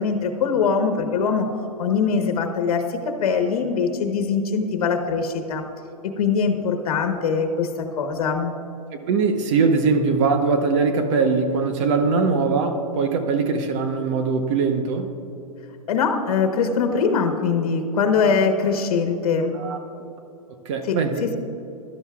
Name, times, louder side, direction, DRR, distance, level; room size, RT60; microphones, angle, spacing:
voice 1, 0.0-5.6 6.2-7.7 8.0-8.5 15.9-19.6 20.9-21.3, left 5 dB, 65° left, 5 dB, 1.2 m, -22 dB
voice 2, 9.1-15.1 19.5-19.8 20.6-21.2, right 4 dB, 50° right, 6 dB, 1.1 m, -21 dB
15.5 x 12.0 x 2.4 m, 2.8 s
hypercardioid pair, 125°, 20 cm